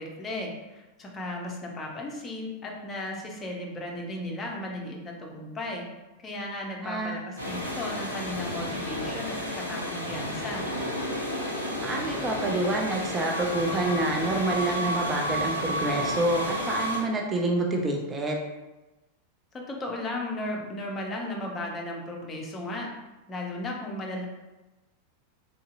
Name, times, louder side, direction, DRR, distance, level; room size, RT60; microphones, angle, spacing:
voice 1, 0.0-5.8 6.2-10.7 19.5-22.9 23.3-24.3, left 1 dB, 20° left, -1 dB, 0.7 m, -35 dB
voice 2, 6.8-7.2 11.8-18.4, right 2 dB, 20° right, 1 dB, 0.4 m, -27 dB
sound 1, 7.4-17.0, equal, 85° right, 0.9 m, -31 dB
3.6 x 2.6 x 2.5 m, 1.1 s
figure-of-eight pair, 90°, 0 cm